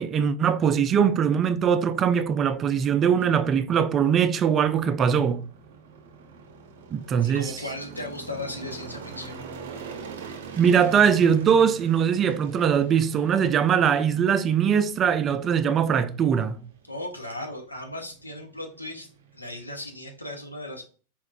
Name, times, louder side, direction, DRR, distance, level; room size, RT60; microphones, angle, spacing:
voice 1, 0.0-5.4 6.9-7.5 10.6-16.6, right 7 dB, 25° right, 0.3 m, -21 dB
sound 1, 0.6-19.9, right 6 dB, 55° right, 0.7 m, -45 dB
voice 2, 7.2-9.4 16.8-20.8, left 1 dB, 85° left, 0.9 m, -36 dB
4.4 x 3.6 x 2.3 m
figure-of-eight pair, 90°, 0 cm